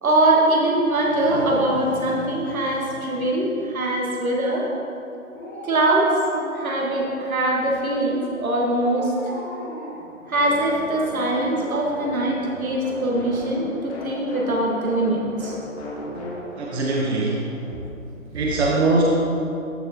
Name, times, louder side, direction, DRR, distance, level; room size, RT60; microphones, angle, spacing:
voice 1, 0.0-4.7 5.6-6.1 6.5-9.1 10.3-15.6, right 1 dB, 75° right, -2 dB, 1.8 m, -22 dB
sound 1, 0.8-4.4, left 2 dB, 35° left, 0.6 m, -38 dB
Dog, 1.6-3.6 5.3-7.0 8.7-10.8 11.2-11.3, equal, 15° left, 1.3 m, -38 dB
sound 2, 10.3-17.8, left 1 dB, 50° left, 1.6 m, -37 dB
voice 2, 16.6-17.5 18.3-19.0, right 3 dB, 50° right, -3 dB, 1.0 m, -22 dB
13.5 x 4.6 x 3.0 m, 2.7 s
hypercardioid pair, 150°, 42 cm